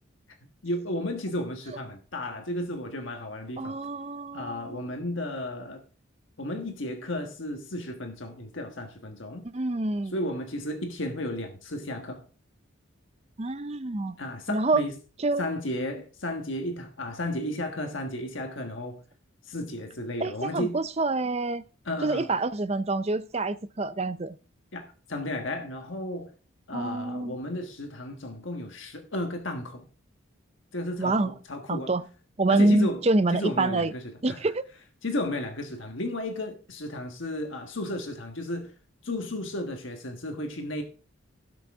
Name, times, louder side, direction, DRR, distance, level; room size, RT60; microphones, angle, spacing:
voice 1, 0.6-3.8 4.3-5.8 6.4-9.5 10.0-12.2 14.2-14.9 15.4-19.0 19.4-20.8 21.8-22.3 24.7-26.3 26.7-29.9 30.7-31.9 32.5-33.0 33.3-34.4 35.0-38.7 39.0-40.8, left 1 dB, 70° left, 1.4 m, -33 dB
voice 2, 3.6-4.8 9.5-10.1 13.4-14.2 14.5-14.8 15.2-15.5 20.2-21.6 22.0-24.4 26.7-27.4 31.0-31.3 31.7-32.0 32.4-33.9 34.2-34.6, right 2 dB, 30° right, 0.5 m, -26 dB
17.0 x 6.3 x 3.6 m
head